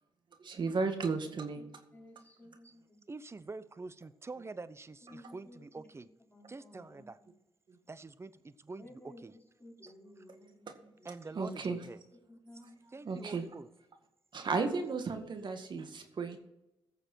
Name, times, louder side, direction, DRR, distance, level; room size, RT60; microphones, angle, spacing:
voice 1, 0.4-1.6 7.7-7.8 10.7-10.8 11.3-11.8 13.1-13.4 14.3-16.4, right 4 dB, 60° right, 6 dB, 1.9 m, -34 dB
voice 2, 1.9-3.0 5.1-5.6 6.3-7.1 8.8-9.2 9.6-11.1 12.3-12.9, left 1 dB, 20° left, -2 dB, 4.7 m, -55 dB
voice 3, 3.1-6.1 6.5-7.2 7.9-9.4 9.8-10.2 11.0-12.0 12.5-13.7 14.9-15.0, right 3 dB, 30° right, 15 dB, 0.8 m, -47 dB
16.0 x 6.8 x 4.6 m, 0.90 s
cardioid pair, 60°, 9 cm